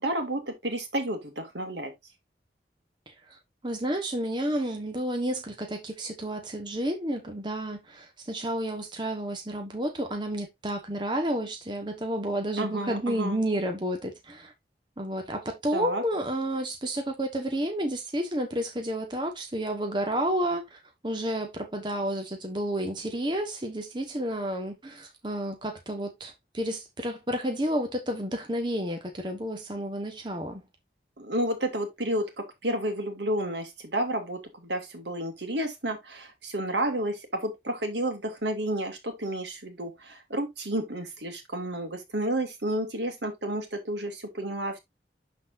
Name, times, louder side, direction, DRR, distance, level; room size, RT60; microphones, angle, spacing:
voice 1, 0.0-1.9 12.6-13.4 15.7-16.0 31.2-44.8, right 1 dB, 85° right, 2.4 m, -31 dB
voice 2, 3.6-14.5 15.0-30.6, right 1 dB, 25° right, 1.3 m, -31 dB
12.0 x 4.2 x 2.6 m
head